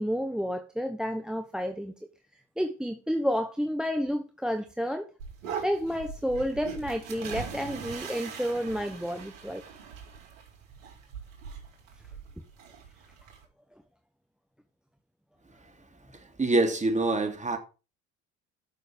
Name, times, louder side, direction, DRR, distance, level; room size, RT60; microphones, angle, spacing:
voice 1, 0.0-1.9 2.6-5.1 5.6-9.6, equal, ahead, 1.1 m, -30 dB
sound 1, 5.2-13.4, right 6 dB, 80° right, 4.3 m, -41 dB
voice 2, 16.4-17.6, right 2 dB, 20° right, 2.9 m, -25 dB
12.0 x 6.7 x 5.2 m
hypercardioid pair, 75°, 37 cm